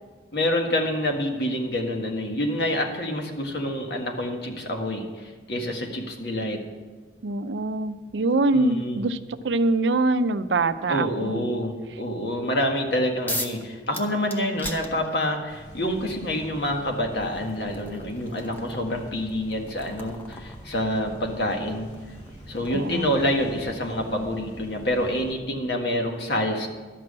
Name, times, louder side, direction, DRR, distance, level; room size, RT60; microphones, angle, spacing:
voice 1, 0.3-6.6 8.5-9.0 10.9-21.9 22.5-26.7, left 1 dB, 65° left, 2 dB, 1.8 m, -27 dB
voice 2, 7.2-9.2 9.4-11.5 22.7-23.2, right 2 dB, 75° right, 12 dB, 0.6 m, -24 dB
sound 1, 13.3-13.6 13.9-15.5 16.6-16.7 17.2-23.9, left 1 dB, 10° left, 0.8 m, -39 dB
sound 2, 15.5-25.3, right 1 dB, 40° left, 2.1 m, -44 dB
12.5 x 6.1 x 8.7 m, 1.4 s
head